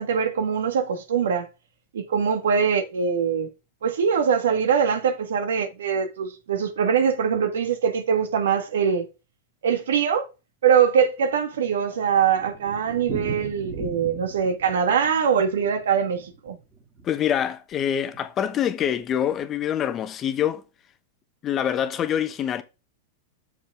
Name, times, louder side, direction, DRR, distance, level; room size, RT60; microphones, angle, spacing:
voice 1, 0.0-1.5 1.9-3.5 3.8-9.1 9.6-10.3 10.6-16.6, right 7 dB, 90° right, 1.5 m, -23 dB
Thunder, 11.2-17.5 17.7-17.8 18.1-18.2 18.4-18.5 19.1-19.4, right 4 dB, 20° right, 2.2 m, -39 dB
voice 2, 17.0-20.6 21.4-22.6, left 9 dB, 25° left, 0.9 m, -25 dB
6.7 x 5.3 x 3.5 m
supercardioid pair, 140°, 0 cm